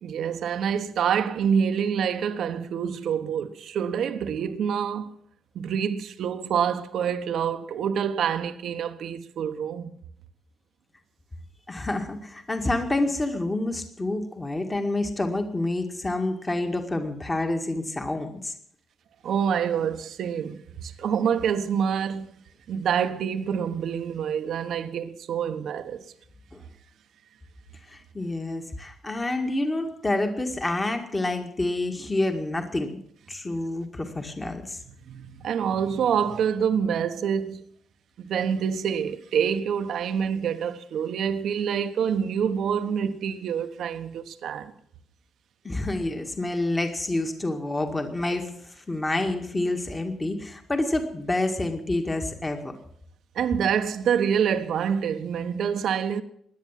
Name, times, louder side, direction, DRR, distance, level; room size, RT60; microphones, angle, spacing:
voice 1, 0.0-5.2 5.5-9.9 19.2-22.3 22.7-26.0 35.1-37.6 38.2-44.7 53.3-56.2, right 7 dB, 70° right, 1.2 m, -26 dB
voice 2, 11.7-18.5 26.5-26.6 27.8-33.0 33.3-34.8 45.6-52.7, left 2 dB, 20° left, 2.0 m, -28 dB
17.5 x 10.5 x 7.5 m
cardioid pair, 90°, 0 cm